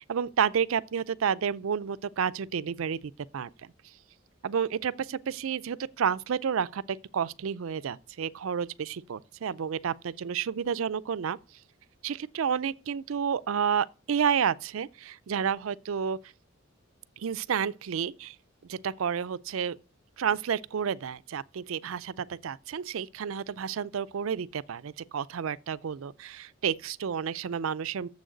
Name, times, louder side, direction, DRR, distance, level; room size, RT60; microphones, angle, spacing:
voice 1, 0.1-3.7 4.4-11.4 12.0-16.2 17.2-18.4 18.7-19.8 20.2-28.1, right 7 dB, 65° right, 0.4 m, -30 dB
7.2 x 6.3 x 7.9 m
head